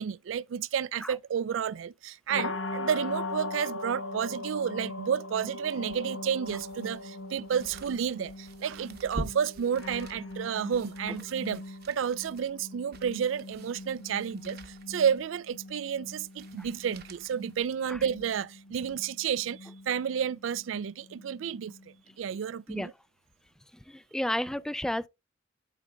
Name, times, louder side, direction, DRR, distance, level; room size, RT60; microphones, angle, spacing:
voice 1, 0.0-21.7 22.2-22.9, right 8 dB, 75° right, 0.4 m, -31 dB
sound 1, 2.3-22.1, left 2 dB, 85° left, 1.2 m, -41 dB
sound 2, 5.7-18.3 18.8-18.9, right 1 dB, 55° right, 1.0 m, -47 dB
voice 2, 23.9-25.1, left 1 dB, 5° left, 0.3 m, -32 dB
11.5 x 5.1 x 2.3 m
head